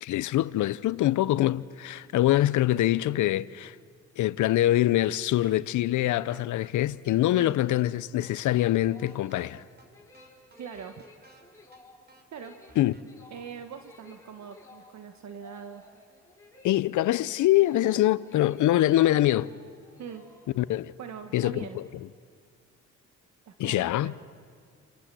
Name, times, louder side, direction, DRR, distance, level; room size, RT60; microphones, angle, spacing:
voice 1, 0.0-3.8 4.2-9.6 12.8-13.0 16.6-19.5 20.6-20.9 21.3-21.9 23.6-24.2, left 14 dB, 75° left, 0.7 m, -24 dB
sound 1, 5.4-5.6 5.9-6.0 6.3-7.5 7.8-7.9 8.2-9.5 9.8-9.9 10.1-11.4 11.7-11.8 12.1-13.0, right 2 dB, 35° right, 3.4 m, -56 dB
sound 2, 8.9-20.8, left 2 dB, 10° left, 6.9 m, -55 dB
voice 2, 10.6-11.0 12.3-12.5 13.3-15.8 20.0-20.2 21.0-21.8 23.5-24.2, right 7 dB, 65° right, 1.4 m, -42 dB
28.0 x 28.0 x 7.7 m
cardioid pair, 90°, 30 cm